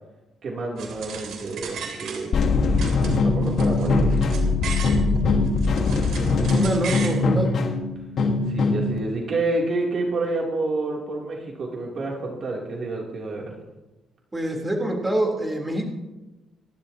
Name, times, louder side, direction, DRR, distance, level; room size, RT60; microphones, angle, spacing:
voice 1, 0.4-2.3 3.2-4.1 4.5-4.6 8.5-13.5, right 2 dB, 55° right, -2 dB, 3.1 m, -29 dB
sound 1, 0.8-2.5 2.8-5.0 5.4-7.2, right 6 dB, 80° right, 3.2 m, -36 dB
sound 2, 2.3-9.0, left 3 dB, 60° left, 1.6 m, -21 dB
voice 2, 6.5-7.5 14.3-15.9, right 1 dB, 15° right, 0 dB, 3.6 m, -25 dB
27.5 x 12.0 x 2.9 m, 1.1 s
cardioid pair, 95°, 0 cm